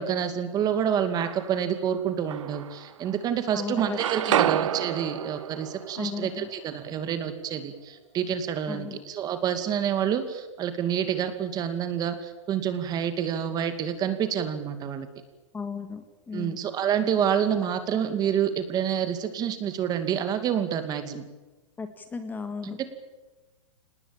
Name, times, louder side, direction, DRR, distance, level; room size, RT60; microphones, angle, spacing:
voice 1, 0.0-15.1 16.3-21.2, right 8 dB, 25° right, 9 dB, 2.4 m, -28 dB
sound 1, 0.9-1.7 2.3-3.3 3.6-7.5, right 10 dB, 75° right, 0.8 m, -30 dB
voice 2, 3.5-4.0 4.3-4.6 6.0-6.5 8.7-9.0 15.5-16.6 21.8-22.8, left 5 dB, 10° left, 8 dB, 2.0 m, -35 dB
26.5 x 19.5 x 8.8 m, 1.1 s
hypercardioid pair, 145°, 16 cm